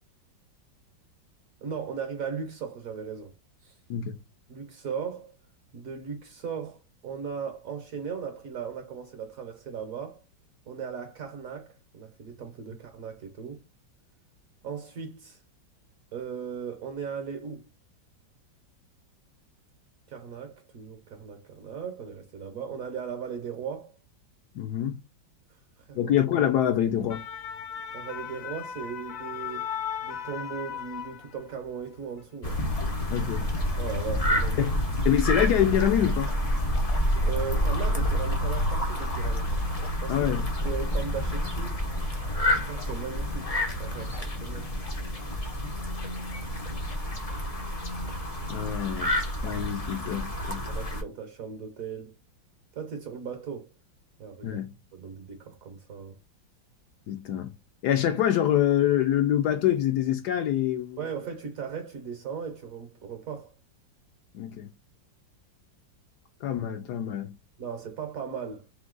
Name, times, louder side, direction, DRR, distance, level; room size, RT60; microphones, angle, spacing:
voice 1, 1.6-3.3 3.6-3.7 4.5-5.3 5.7-6.8 7.0-10.2 10.7-13.6 14.6-15.4 16.1-17.7 20.1-23.9 25.9-26.1 27.9-29.7 30.0-32.6 33.8-34.6 37.2-39.5 40.0-40.3 40.6-41.8 42.6-43.5 43.8-44.7 50.7-52.2 52.7-53.7 54.2-54.6 54.9-56.2 61.0-63.5 67.6-68.7, right 6 dB, 60° right, 1.0 m, -37 dB
voice 2, 24.5-25.0 26.0-27.2 33.1-33.4 34.6-34.8 35.0-36.3 40.1-40.5 48.5-49.1 49.4-50.6 54.4-54.7 57.1-57.5 57.8-61.0 64.3-64.7 66.4-67.3, left 11 dB, 70° left, 1.0 m, -25 dB
sound 1, 26.8-31.6 32.0-32.2, left 8 dB, 90° left, 0.7 m, -37 dB
sound 2, 32.4-51.0, equal, 55° left, 0.4 m, -28 dB
3.8 x 2.8 x 3.7 m
omnidirectional pair, 2.0 m